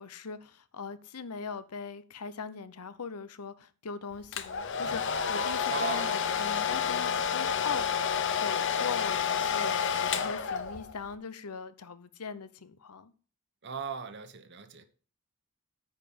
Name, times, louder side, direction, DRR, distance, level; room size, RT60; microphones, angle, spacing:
voice 1, 0.0-8.1 8.4-13.1, left 5 dB, 85° left, 0.8 m, -41 dB
Domestic sounds home sounds, 4.3-11.0, left 7 dB, 55° left, 0.7 m, -29 dB
voice 2, 5.7-6.1 13.6-14.8, right 5 dB, 50° right, 1.1 m, -37 dB
9.6 x 5.0 x 7.2 m
head